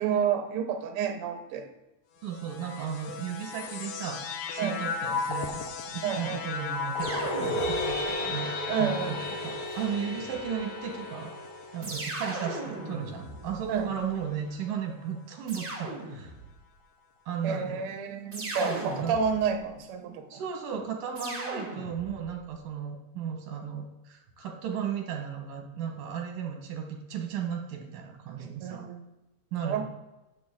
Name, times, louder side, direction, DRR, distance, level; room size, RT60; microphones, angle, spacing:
voice 1, 0.0-1.7 4.6-4.8 6.0-6.4 8.7-9.2 13.7-13.9 17.4-20.4 28.6-29.0 29.6-29.8, right 7 dB, 65° right, 6 dB, 1.5 m, -30 dB
sound 1, 2.2-13.7 14.5-15.2, left 5 dB, 80° left, 2.2 m, -38 dB
voice 2, 2.2-4.2 4.5-8.5 8.8-11.4 11.7-16.3 17.3-17.9 18.6-19.2 20.3-28.9 29.5-29.8, right 7 dB, 90° right, 3 dB, 3.0 m, -35 dB
sound 2, 7.0-12.2, left 1 dB, 60° left, 3.3 m, -34 dB
sound 3, 7.0-8.2 9.7-10.6 11.8-14.1 15.5-16.6 18.3-19.7 21.1-22.4, right 2 dB, 35° right, 0.9 m, -38 dB
11.5 x 7.1 x 3.8 m, 1.0 s
omnidirectional pair, 3.7 m